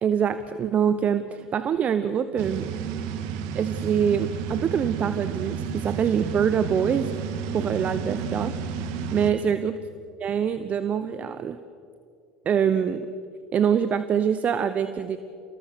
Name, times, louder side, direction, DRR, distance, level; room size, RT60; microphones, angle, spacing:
voice 1, 0.0-2.7 3.5-7.1 7.5-8.5 9.1-9.8 10.2-11.6 12.4-13.1 13.5-15.2, right 8 dB, 40° right, 12 dB, 1.0 m, -24 dB
sound 1, 2.4-9.3, right 6 dB, 70° right, 1.8 m, -31 dB
28.5 x 19.5 x 6.4 m, 2.5 s
hypercardioid pair, 80°, 4 cm